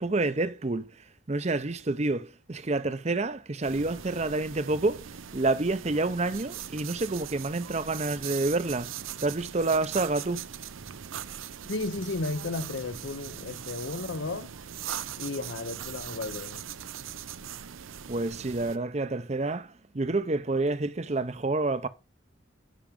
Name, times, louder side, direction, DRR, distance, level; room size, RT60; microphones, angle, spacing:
voice 1, 0.0-5.1 5.3-8.9 9.2-10.5 18.1-21.9, right 2 dB, 35° right, 0.6 m, -28 dB
sound 1, 3.6-18.8, right 9 dB, 90° right, 0.6 m, -40 dB
voice 2, 11.6-14.5 15.2-16.6, left 3 dB, 70° left, 0.7 m, -34 dB
10.0 x 5.9 x 5.2 m
head